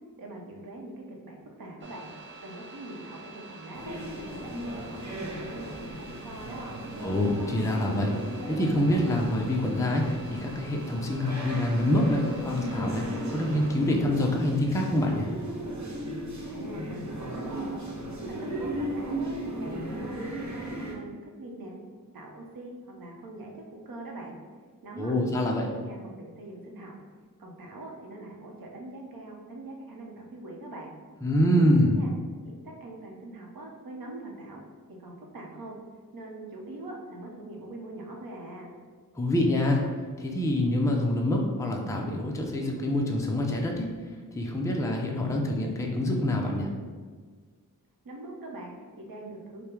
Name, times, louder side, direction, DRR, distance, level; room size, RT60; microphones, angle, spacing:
voice 1, 0.2-2.1 2.4-5.2 5.4-6.8 16.4-17.7 18.0-21.7 22.1-24.3 24.8-26.9 27.4-30.9 31.5-32.1 32.4-34.6 34.9-35.8 36.1-38.7 48.0-49.6, right 1 dB, 75° right, 0 dB, 0.9 m, -42 dB
sound 1, 1.8-13.8, right 2 dB, 35° right, 0.7 m, -47 dB
sound 2, 3.7-20.9, right 1 dB, 50° right, 1.1 m, -36 dB
voice 2, 7.0-8.1 8.5-13.0 13.3-15.3 25.0-25.7 31.2-32.0 39.2-43.9 44.3-46.7, left 1 dB, 10° left, 0 dB, 0.5 m, -26 dB
5.2 x 2.2 x 4.5 m, 1.5 s
wide cardioid pair, 95°, 35 cm